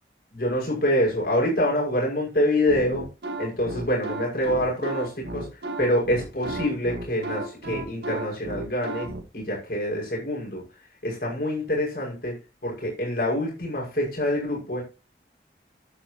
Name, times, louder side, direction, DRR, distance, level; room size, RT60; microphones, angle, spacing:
voice 1, 0.3-3.1 3.4-5.5 5.8-9.1 9.3-10.6 11.0-12.4 12.6-14.8, left 1 dB, 55° left, -3 dB, 6.2 m, -26 dB
sound 1, 2.7-9.2, right 2 dB, 65° right, 1.9 m, -33 dB
10.5 x 8.9 x 3.0 m, 0.29 s
head